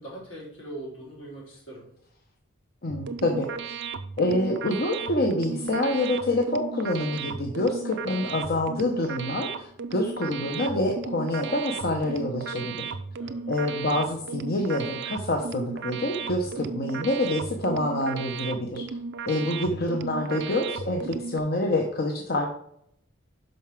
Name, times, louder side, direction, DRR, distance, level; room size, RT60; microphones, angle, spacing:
voice 1, 0.0-1.9 13.2-13.5 16.4-16.9, right 1 dB, 70° left, -4 dB, 3.5 m, -42 dB
voice 2, 2.8-3.8 4.2-12.9 13.5-18.9 19.3-22.5, left 1 dB, 50° left, 1 dB, 0.9 m, -27 dB
sound 1, 2.9-21.4, right 5 dB, 60° right, 0.5 m, -35 dB
5.7 x 5.3 x 6.0 m, 0.71 s
head